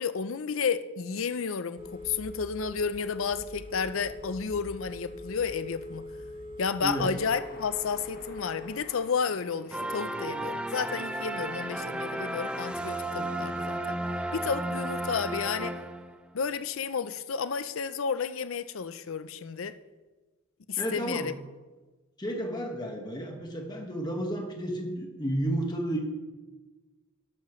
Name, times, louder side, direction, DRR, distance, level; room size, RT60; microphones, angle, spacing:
voice 1, 0.0-6.0 6.6-14.0 14.3-15.8 16.3-19.7 20.7-21.3, left 6 dB, 70° left, 13 dB, 0.5 m, -31 dB
Telephone, 1.8-8.8, left 1 dB, 30° right, 2.6 m, -42 dB
voice 2, 6.8-7.1 20.8-21.3 22.2-26.0, right 1 dB, 20° left, 2 dB, 1.5 m, -32 dB
sound 1, 7.2-12.4, left 2 dB, 45° left, 1.6 m, -52 dB
Success Triumph Resolution Sound Effect, 9.7-16.3, right 1 dB, 5° right, 0.4 m, -33 dB
12.5 x 11.5 x 3.1 m, 1.2 s
head